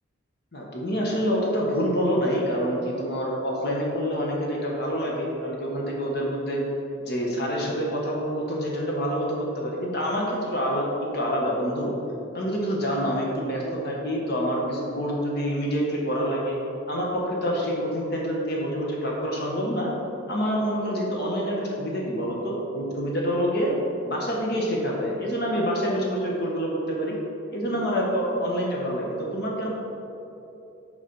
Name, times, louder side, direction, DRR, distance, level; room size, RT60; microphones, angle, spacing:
voice 1, 0.5-6.6 7.0-11.9 12.3-16.6 16.9-19.9 20.3-23.7 24.0-27.1 27.5-29.7, equal, 50° left, -3 dB, 1.2 m, -27 dB
6.8 x 5.0 x 5.3 m, 2.8 s
head